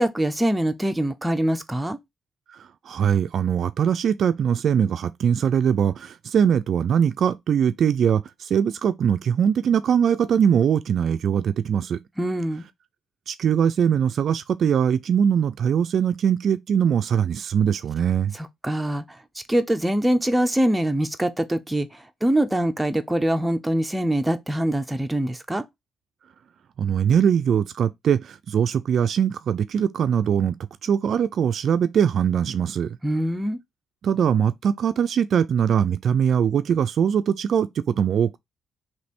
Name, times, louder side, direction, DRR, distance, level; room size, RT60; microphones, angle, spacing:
voice 1, 0.0-2.0 12.2-12.7 18.3-19.2 19.5-25.6 33.0-33.6, right 1 dB, 10° right, 0.6 m, -24 dB
voice 2, 2.6-12.0 13.3-18.3 26.8-30.6 30.8-33.0 34.0-38.4, right 8 dB, 60° right, 0.3 m, -21 dB
3.2 x 3.1 x 4.2 m
cardioid pair, 90°, 0 cm